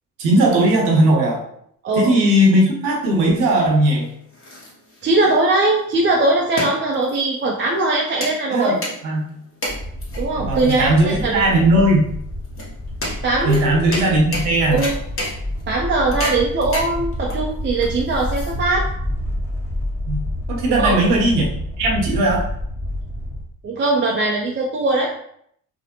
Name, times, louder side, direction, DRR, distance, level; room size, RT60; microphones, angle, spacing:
voice 1, 0.2-1.4 1.9-4.1 8.5-8.7 9.0-9.3 10.5-12.1 13.4-14.8 20.1-20.2 20.5-21.5 21.8-22.4, right 1 dB, 75° right, 0 dB, 0.8 m, -17 dB
voice 2, 1.8-2.1 5.0-8.8 10.2-11.5 13.2-13.8 14.7-14.9 15.7-18.9 20.7-21.0 23.6-25.1, right 2 dB, 30° right, -1 dB, 0.4 m, -20 dB
sound 1, 4.0-18.9, left 1 dB, 30° left, 1.0 m, -32 dB
sound 2, 9.7-23.4, left 1 dB, 5° left, 0.8 m, -28 dB
2.5 x 2.0 x 2.8 m, 0.68 s
hypercardioid pair, 50°, 41 cm